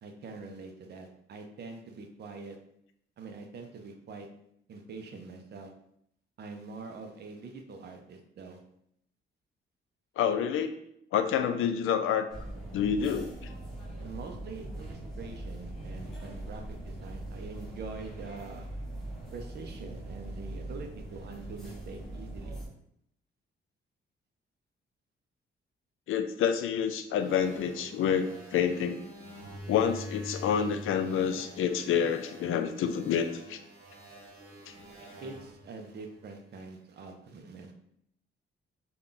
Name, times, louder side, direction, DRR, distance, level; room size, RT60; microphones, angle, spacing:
voice 1, 0.0-2.6 3.2-4.3 4.7-5.7 6.4-8.6 14.0-18.7 19.3-22.6 35.2-37.7, right 4 dB, 55° right, 4 dB, 0.5 m, -44 dB
voice 2, 10.2-10.7 11.1-12.3 12.7-13.3 26.1-29.0 29.7-33.6 34.7-34.8, left 8 dB, 90° left, 8 dB, 0.4 m, -28 dB
sound 1, 12.3-22.7, right 1 dB, ahead, 1.0 m, -41 dB
sound 2, 27.2-36.6, equal, 85° right, 0.9 m, -47 dB
3.7 x 2.3 x 3.8 m, 0.74 s
wide cardioid pair, 160°, 21 cm